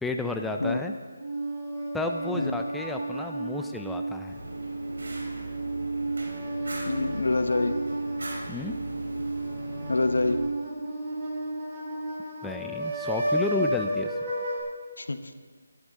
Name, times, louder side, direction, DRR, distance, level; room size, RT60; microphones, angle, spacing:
voice 1, 0.0-0.9 1.9-4.4 8.5-8.8 12.4-14.2, left 2 dB, 5° left, 4 dB, 0.4 m, -32 dB
sound 1, 1.2-14.6, right 1 dB, 25° right, 3.9 m, -32 dB
Fire, 4.3-10.4, right 1 dB, 85° right, 3.6 m, -40 dB
voice 2, 6.9-7.8 9.9-10.4 15.0-15.2, left 2 dB, 85° left, 10 dB, 0.8 m, -26 dB
14.0 x 10.5 x 3.7 m, 1.5 s
figure-of-eight pair, 165°, 0 cm